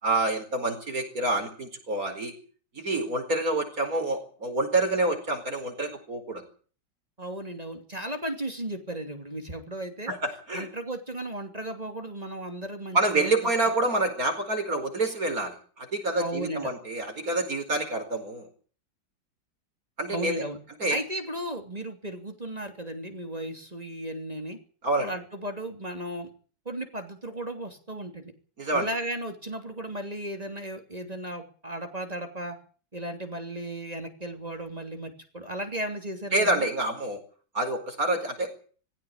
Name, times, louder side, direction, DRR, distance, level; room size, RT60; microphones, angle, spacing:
voice 1, 0.0-2.3 2.7-6.4 10.1-10.7 12.9-18.5 20.0-20.4 20.8-21.0 24.8-25.1 28.6-28.9 36.3-37.2 37.5-38.5, right 2 dB, 50° right, 5 dB, 5.2 m, -27 dB
voice 2, 7.2-10.1 10.5-13.3 16.2-16.7 20.1-20.6 20.9-24.6 25.0-26.3 26.6-28.3 28.7-32.6 32.9-36.7, right 1 dB, 20° right, 5 dB, 3.1 m, -35 dB
20.5 x 16.0 x 8.9 m, 0.43 s
omnidirectional pair, 2.0 m